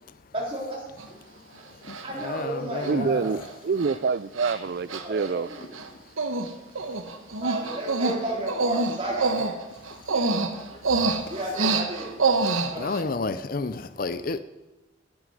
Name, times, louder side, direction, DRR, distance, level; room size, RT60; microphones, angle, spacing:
voice 1, 0.3-0.8 1.5-1.6 2.0-3.4 4.5-4.6 4.9-5.7 7.4-9.6 10.1-10.4 10.7-10.8 11.3-12.1 12.7-13.4, right 1 dB, 25° right, 4.1 m, -33 dB
Human voice, 1.0-1.1 1.9-2.2 2.8-2.9 3.3-3.5 3.8-3.9 4.3-4.6 4.9-5.9 6.2-6.5 6.7-13.0, right 3 dB, 85° right, 1.1 m, -26 dB
voice 2, 2.2-3.1 12.8-14.4, left 3 dB, 45° left, 0.5 m, -30 dB
voice 3, 2.9-5.5, right 5 dB, 50° right, 0.3 m, -26 dB
9.9 x 9.5 x 9.7 m
head